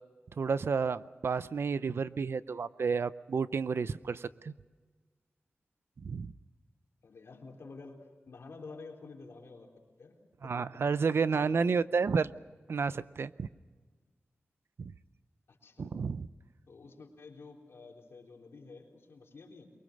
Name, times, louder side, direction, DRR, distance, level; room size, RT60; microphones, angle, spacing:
voice 1, 0.4-4.5 6.0-6.3 10.4-12.3 12.7-13.5 14.8-14.9 15.8-16.3, right 5 dB, 70° right, 15 dB, 0.6 m, -31 dB
voice 2, 7.0-9.7 10.0-10.2 10.4-10.8 11.4-11.8 15.5-15.9 16.7-19.7, left 4 dB, 80° left, 0 dB, 3.7 m, -50 dB
23.5 x 23.0 x 6.6 m, 1.4 s
wide cardioid pair, 120°, 4 cm